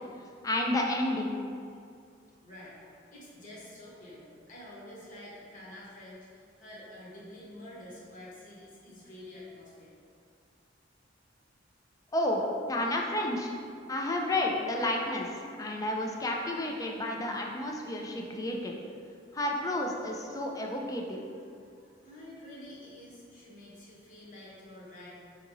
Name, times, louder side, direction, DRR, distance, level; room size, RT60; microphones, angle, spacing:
voice 1, 0.4-1.4 12.1-12.4 12.7-13.5 13.9-18.8 19.3-21.2, left 1 dB, 20° left, 0 dB, 0.4 m, -31 dB
voice 2, 2.4-10.0 21.3-21.5 21.7-25.2, left 1 dB, 45° left, -6 dB, 1.0 m, -48 dB
5.1 x 2.8 x 2.6 m, 2.3 s
head